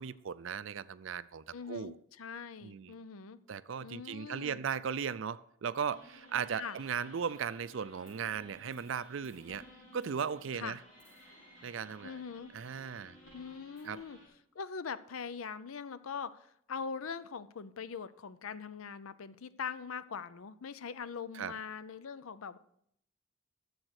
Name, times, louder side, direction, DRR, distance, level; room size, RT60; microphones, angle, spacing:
voice 1, 0.0-2.0 2.6-3.0 3.5-9.6 9.9-10.8 11.6-12.2 12.5-13.2 13.8-14.0 21.3-21.5, right 7 dB, 65° right, 16 dB, 0.4 m, -37 dB
voice 2, 1.5-3.4 3.8-4.6 6.5-6.8 10.5-10.8 12.0-12.5 13.3-14.2 14.5-22.6, left 6 dB, 75° left, 15 dB, 0.5 m, -42 dB
sound 1, 5.8-14.3, equal, 60° left, 4.7 m, -57 dB
13.0 x 7.1 x 4.9 m, 0.71 s
head